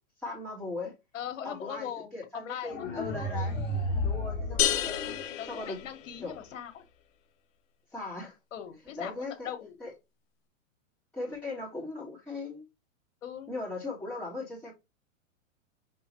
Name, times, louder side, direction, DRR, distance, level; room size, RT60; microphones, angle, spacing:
voice 1, 0.2-0.9 1.4-3.6 4.0-5.2 5.5-5.8 6.2-6.3 7.9-8.4 9.0-9.5 9.8-9.9 11.1-12.7 13.5-14.7, left 2 dB, 5° left, 2.7 m, -38 dB
voice 2, 1.1-2.9 4.0-4.2 5.4-6.8 8.5-9.1 9.4-9.8 13.2-13.5, left 9 dB, 65° left, 1.7 m, -40 dB
sound 1, 2.7-5.7, left 1 dB, 25° left, 2.1 m, -33 dB
sound 2, 4.6-6.4, left 11 dB, 45° left, 1.3 m, -31 dB
6.3 x 3.9 x 4.5 m
hypercardioid pair, 140°, 40 cm